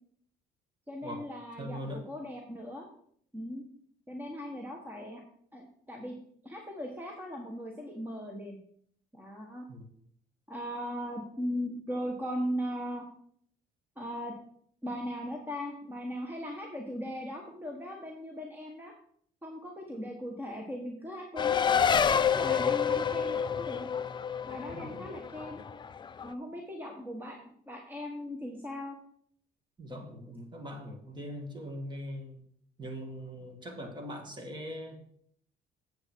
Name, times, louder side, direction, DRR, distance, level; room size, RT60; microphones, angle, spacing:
voice 1, 0.9-2.9 3.3-3.6 4.1-5.2 5.5-6.1 6.4-8.6 9.2-9.6 10.5-13.0 14.0-14.3 14.8-18.9 19.4-23.9 24.5-25.6 26.2-29.0, equal, 10° right, 1 dB, 1.4 m, -38 dB
voice 2, 1.6-2.0 9.7-9.8 24.7-25.0 29.8-32.4 32.8-35.0, equal, 25° right, 4 dB, 2.1 m, -41 dB
Race car auto racing, 21.4-26.3, left 7 dB, 25° left, 0.4 m, -28 dB
8.3 x 8.1 x 4.6 m, 0.64 s
cardioid pair, 110°, 17 cm